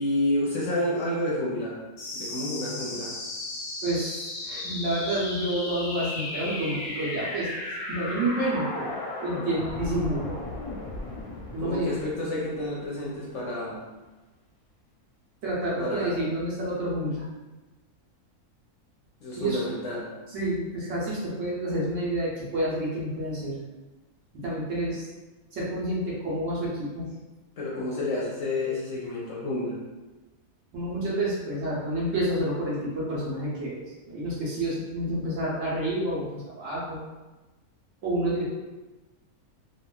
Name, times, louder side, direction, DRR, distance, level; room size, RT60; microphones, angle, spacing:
voice 1, 0.0-1.8 2.1-3.1 11.6-13.8 15.8-16.2 19.2-20.1 27.6-29.8, left 1 dB, 65° left, -5 dB, 0.8 m, -29 dB
sound 1, 2.0-13.0, left 2 dB, 90° left, 1.1 m, -35 dB
voice 2, 3.8-7.5 7.9-10.4 11.5-11.9 15.4-17.2 19.4-19.6 20.3-23.6 24.3-25.1 25.5-27.1 30.7-37.0 38.0-38.4, right 1 dB, 60° right, -6 dB, 1.0 m, -29 dB
3.0 x 2.2 x 2.2 m, 1.1 s
omnidirectional pair, 1.6 m